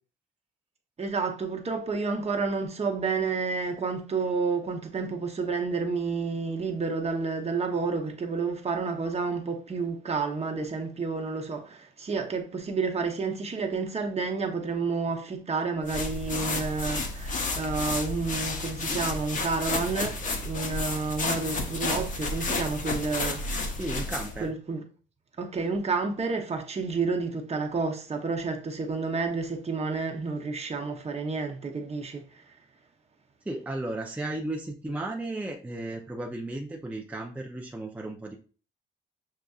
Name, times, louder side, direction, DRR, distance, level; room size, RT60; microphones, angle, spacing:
voice 1, 1.0-23.4 24.4-24.8 25.4-32.2, right 4 dB, 30° right, 0.9 m, -30 dB
sound 1, 15.9-24.4, left 3 dB, 40° left, 0.8 m, -31 dB
voice 2, 23.8-24.5 33.5-38.4, right 2 dB, 5° right, 0.5 m, -34 dB
6.5 x 2.5 x 2.4 m
cardioid pair, 90°, 20 cm